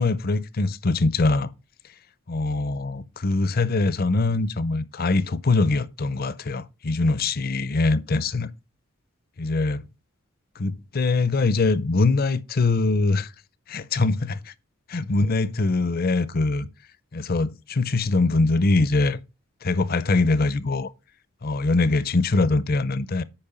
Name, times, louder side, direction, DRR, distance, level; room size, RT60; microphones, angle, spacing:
voice 1, 0.0-1.5 2.3-8.5 9.4-9.8 10.6-13.3 13.7-14.5 14.9-16.7 17.1-19.2 19.6-20.9 21.4-23.2, left 3 dB, 45° left, 0.6 m, -23 dB
8.8 x 5.3 x 5.4 m
head